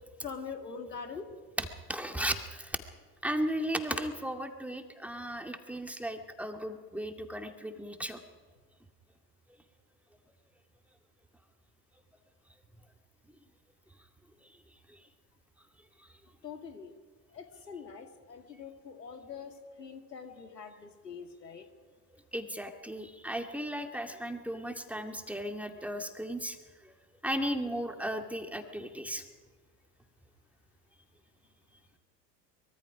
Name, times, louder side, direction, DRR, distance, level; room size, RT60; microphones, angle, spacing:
voice 1, 0.2-1.3 16.4-16.9 17.3-21.7, left 5 dB, 85° left, 6 dB, 2.1 m, -44 dB
voice 2, 1.6-2.8 3.2-8.2 22.3-26.6 26.9-27.0 27.2-29.2, equal, 5° right, 5 dB, 2.2 m, -35 dB
24.0 x 22.5 x 5.1 m, 1.5 s
hypercardioid pair, 75°, 48 cm